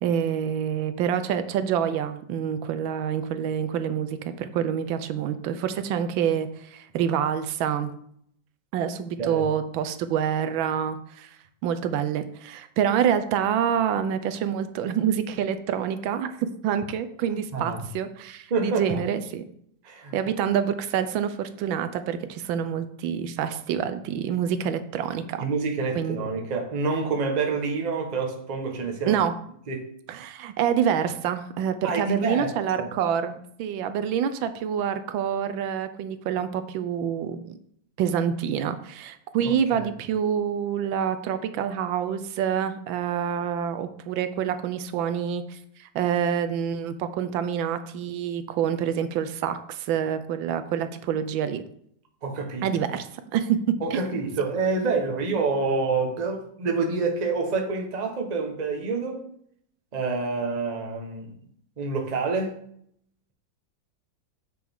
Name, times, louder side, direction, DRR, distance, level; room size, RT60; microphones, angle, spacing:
voice 1, 0.0-7.9 8.7-11.3 11.6-19.4 20.1-25.4 26.0-26.3 29.1-29.3 30.1-37.6 38.0-51.6 52.6-53.6 53.9-54.0, right 8 dB, 80° right, 1.4 m, -27 dB
voice 2, 17.3-17.8 18.5-19.0 19.8-20.1 25.4-29.2 29.7-29.8 31.8-32.5 32.8-32.9 39.4-39.9 52.2-52.7 53.8-59.2 59.9-61.3 61.8-62.6, right 4 dB, 30° right, 0.8 m, -27 dB
7.6 x 6.0 x 3.6 m
omnidirectional pair, 2.1 m